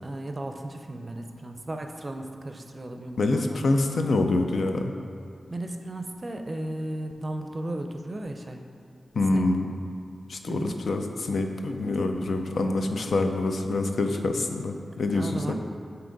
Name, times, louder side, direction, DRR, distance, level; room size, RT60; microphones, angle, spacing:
voice 1, 0.0-3.6 5.5-8.6 9.3-9.5 10.5-10.8 15.1-15.5, right 1 dB, 35° right, 5 dB, 0.5 m, -35 dB
voice 2, 3.2-4.9 9.1-9.7 10.3-15.5, left 2 dB, 80° left, 5 dB, 0.4 m, -26 dB
8.6 x 2.9 x 3.9 m, 2.3 s
wide cardioid pair, 70°, 0 cm